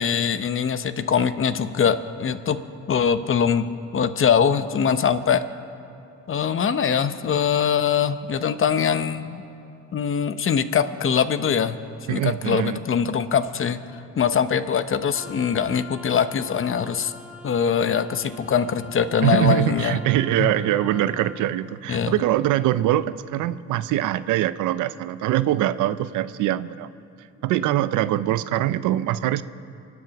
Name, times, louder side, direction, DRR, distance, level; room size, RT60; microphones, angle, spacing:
voice 1, 0.0-2.6 2.9-3.7 3.9-5.4 6.3-9.4 9.9-11.8 12.1-13.8 14.2-17.1 17.4-20.0 20.4-20.5 21.9-22.1, left 7 dB, 45° left, 12 dB, 0.8 m, -22 dB
voice 2, 12.1-12.8 19.2-26.9 27.4-29.4, right 13 dB, 90° right, 15 dB, 0.6 m, -23 dB
Wind instrument woodwind instrument, 15.1-21.4, left 2 dB, 5° right, 1.6 m, -43 dB
25.0 x 8.3 x 5.9 m, 2.8 s
cardioid pair, 90°, 30 cm